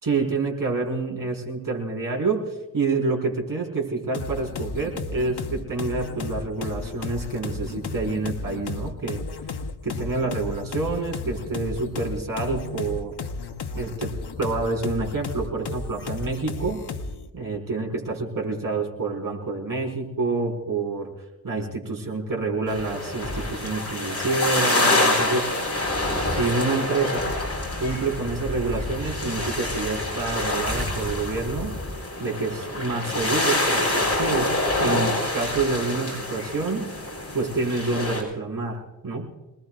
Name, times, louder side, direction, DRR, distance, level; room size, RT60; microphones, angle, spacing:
voice 1, 0.0-9.2 9.8-13.1 13.7-16.8 17.3-21.1 21.4-25.5 26.1-27.3 27.8-31.7 32.2-36.9 37.3-39.3, right 3 dB, 55° right, -1 dB, 4.7 m, -28 dB
sound 1, 4.1-17.3, left 4 dB, 75° left, 1.2 m, -34 dB
sound 2, 22.7-38.2, left 1 dB, 40° left, 6.1 m, -26 dB
25.5 x 20.5 x 2.4 m, 1.1 s
wide cardioid pair, 85°, 40 cm